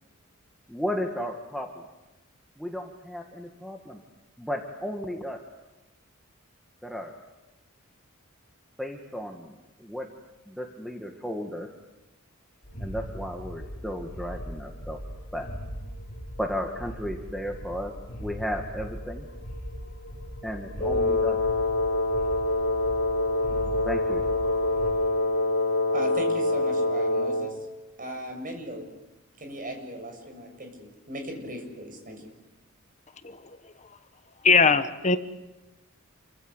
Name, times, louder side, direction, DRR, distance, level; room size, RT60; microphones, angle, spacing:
voice 1, 0.7-1.8 2.6-4.0 4.4-5.4 6.8-7.1 8.8-10.1 10.5-11.7 12.8-15.0 15.3-15.5 16.4-17.9 18.2-19.3 20.4-21.4 23.9-24.2, equal, ahead, 2 dB, 1.9 m, -34 dB
sound 1, 12.6-24.9, equal, 50° left, 5.6 m, -39 dB
Wind instrument woodwind instrument, 20.8-27.6, left 2 dB, 80° left, 2.7 m, -25 dB
voice 2, 25.9-27.5 28.0-28.8 29.4-32.3, right 1 dB, 40° right, 4 dB, 7.1 m, -37 dB
voice 3, 34.4-35.2, left 4 dB, 35° left, 10 dB, 1.3 m, -20 dB
28.5 x 25.0 x 8.0 m, 1.0 s
head